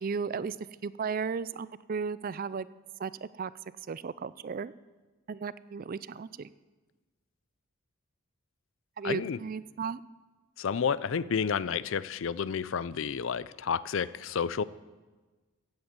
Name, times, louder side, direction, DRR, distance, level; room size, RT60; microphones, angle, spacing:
voice 1, 0.0-0.5 0.8-2.7 3.0-3.5 3.9-4.7 5.3-6.5 9.0-10.0, right 5 dB, 40° right, 18 dB, 0.4 m, -35 dB
voice 2, 9.0-9.4 10.6-14.6, left 6 dB, 65° left, 18 dB, 0.5 m, -30 dB
15.5 x 8.0 x 8.1 m, 1.3 s
head